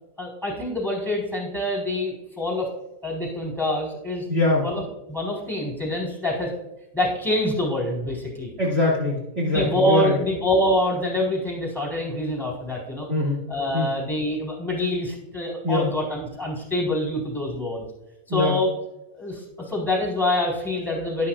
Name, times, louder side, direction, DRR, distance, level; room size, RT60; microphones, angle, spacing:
voice 1, 0.2-2.7 3.0-4.2 4.6-4.8 5.1-6.5 6.9-8.5 9.4-13.1 13.5-17.8 18.3-18.7 19.2-21.3, left 1 dB, ahead, -1 dB, 4.2 m, -26 dB
voice 2, 4.3-4.7 8.6-10.2 13.1-13.4 13.7-13.9 15.6-15.9 18.3-18.6, left 2 dB, 35° right, -5 dB, 2.5 m, -22 dB
12.5 x 11.5 x 2.5 m, 0.91 s
omnidirectional pair, 2.0 m